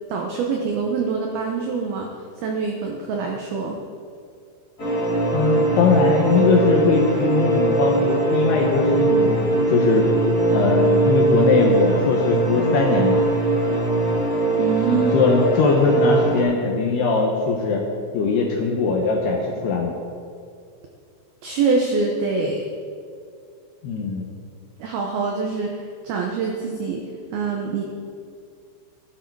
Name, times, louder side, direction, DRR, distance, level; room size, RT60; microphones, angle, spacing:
voice 1, 0.1-2.1 2.4-3.8 14.6-15.2 21.4-22.6 24.8-27.0 27.3-27.8, right 4 dB, 90° right, 1 dB, 2.1 m, -24 dB
sound 1, 4.8-16.4, right 2 dB, 20° left, 3.1 m, -21 dB
voice 2, 5.3-10.1 10.5-13.2 14.9-17.8 18.1-19.9 23.8-24.3, left 4 dB, 75° left, 0 dB, 2.5 m, -20 dB
13.0 x 12.0 x 4.7 m, 2.3 s
omnidirectional pair, 5.8 m